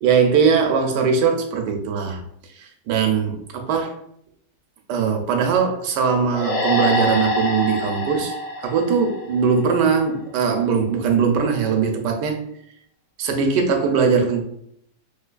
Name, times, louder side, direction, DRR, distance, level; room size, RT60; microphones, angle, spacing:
voice 1, 0.0-2.2 2.6-4.0 4.9-8.4 8.6-12.4 13.2-14.4, right 6 dB, 90° right, 1.2 m, -20 dB
sound 1, 6.3-9.8, left 1 dB, 85° left, 1.4 m, -25 dB
3.4 x 3.2 x 2.2 m
omnidirectional pair, 1.8 m